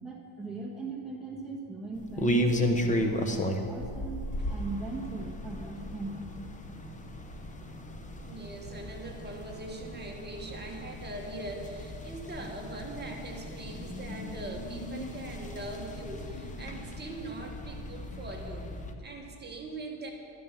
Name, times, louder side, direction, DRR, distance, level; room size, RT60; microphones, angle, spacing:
voice 1, 0.0-6.2, right 3 dB, ahead, -3 dB, 1.4 m, -39 dB
sound 1, 1.9-18.9, equal, 15° left, 0.9 m, -35 dB
voice 2, 8.2-18.7 19.0-20.1, right 2 dB, 20° right, 0 dB, 1.8 m, -41 dB
12.5 x 12.0 x 6.9 m, 2.4 s
cardioid pair, 155°, 49 cm